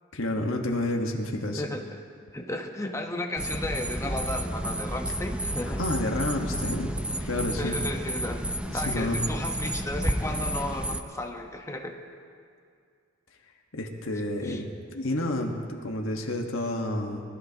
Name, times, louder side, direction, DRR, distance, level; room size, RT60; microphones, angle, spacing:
voice 1, 0.1-1.6 5.8-6.9 7.2-7.8 8.7-9.2 13.7-17.2, left 1 dB, 75° left, 1 dB, 1.4 m, -30 dB
voice 2, 2.3-5.8 7.6-8.4 8.7-11.9 14.4-14.6, left 1 dB, 15° left, 3 dB, 1.1 m, -34 dB
sound 1, 3.4-11.0, right 1 dB, 5° right, 0.5 m, -31 dB
23.5 x 14.0 x 2.9 m, 2.2 s
head